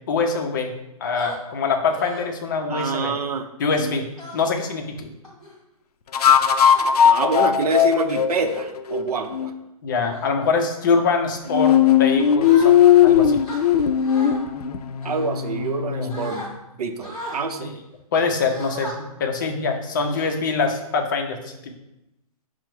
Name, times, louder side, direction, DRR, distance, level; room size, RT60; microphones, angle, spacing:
voice 1, 0.1-0.7 1.0-3.1 3.6-4.1 4.3-5.1 9.8-13.4 15.9-16.1 17.6-17.8 18.1-21.7, left 4 dB, 35° left, 3 dB, 0.5 m, -24 dB
sound 1, 1.2-1.4 1.9-2.3 2.8-3.1 4.2-4.6 5.2-5.5 6.3-6.8 7.7-7.9 8.4-8.7 9.2-9.5 10.0-10.3 10.8-11.1 12.4-13.0 13.4-14.4 15.0-15.8 16.1-16.5 17.0-17.4 18.4-18.9 19.4-19.6 20.0-20.7, equal, ahead, 0.8 m, -38 dB
voice 2, 2.7-3.5 7.0-9.5 15.0-16.5 16.8-17.7, right 4 dB, 85° right, 7 dB, 0.6 m, -26 dB
sound 2, 3.8-4.0 6.1-9.5 11.5-16.3, left 9 dB, 85° left, 0.4 m, -18 dB
5.5 x 2.0 x 4.6 m, 0.89 s
hypercardioid pair, 165°, 19 cm